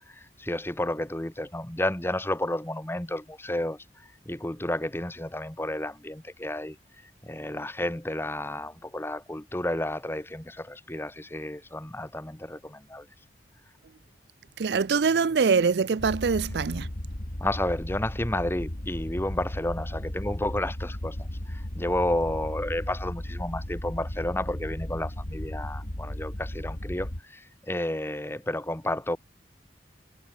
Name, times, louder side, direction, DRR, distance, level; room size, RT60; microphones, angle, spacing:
voice 1, 0.0-3.8 4.2-6.8 7.2-13.1 17.4-21.2 21.5-29.2, left 1 dB, 15° left, 1.5 m, -31 dB
voice 2, 14.6-16.9, right 5 dB, 65° right, 0.5 m, -24 dB
sound 1, 16.0-27.2, left 1 dB, 50° left, 2.3 m, -35 dB
head